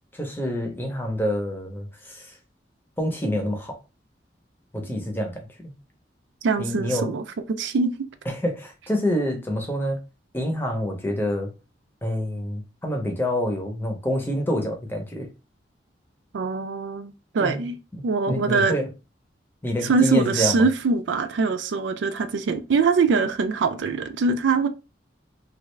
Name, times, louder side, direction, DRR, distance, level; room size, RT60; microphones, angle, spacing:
voice 1, 0.1-2.3 3.0-3.8 4.7-5.7 6.6-7.1 8.3-10.0 10.3-11.5 12.0-15.3 17.4-17.6 17.9-18.9 19.6-20.7, equal, 10° left, 0.7 m, -27 dB
voice 2, 6.4-7.2 7.5-7.9 16.3-17.8 18.0-18.8 19.8-24.7, right 4 dB, 80° right, 0.4 m, -23 dB
3.2 x 2.4 x 3.1 m
head